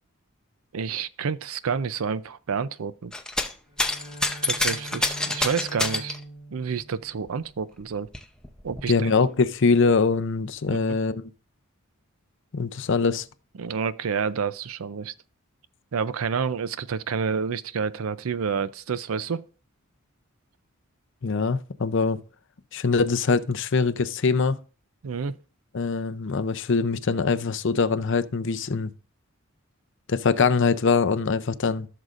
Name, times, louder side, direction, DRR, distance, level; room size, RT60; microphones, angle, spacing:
voice 1, 0.7-3.1 4.4-6.2 6.5-8.1 8.6-9.1 10.7-10.8 13.6-15.1 15.9-19.4 25.0-25.4, right 6 dB, 75° right, 0.5 m, -29 dB
sound 1, 3.1-3.5 3.8-6.2 7.3-7.4 7.8-8.8 9.7-9.8, left 2 dB, 5° left, 0.6 m, -27 dB
Bowed string instrument, 3.6-7.8, equal, 25° right, 4.5 m, -43 dB
voice 2, 8.9-11.3 12.5-13.3 21.2-22.2 22.7-24.6 25.7-28.9 30.1-31.9, left 4 dB, 60° left, 0.6 m, -23 dB
15.0 x 6.5 x 2.5 m
head